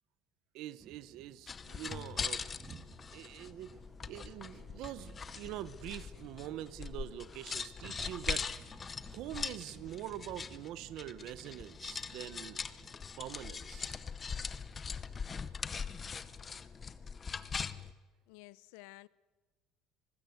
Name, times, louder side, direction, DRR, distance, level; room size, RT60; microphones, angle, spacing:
voice 1, 0.5-2.5 3.1-3.8 4.1-8.8 9.1-12.6 13.2-14.0, right 13 dB, 55° right, 1.0 m, -44 dB
sound 1, 0.8-15.6, right 6 dB, 25° right, 1.6 m, -58 dB
sound 2, 1.5-17.9, left 5 dB, 20° left, 0.8 m, -41 dB
voice 2, 18.3-19.1, left 20 dB, 85° left, 0.7 m, -53 dB
25.0 x 20.5 x 8.0 m
cardioid pair, 165°, 0 cm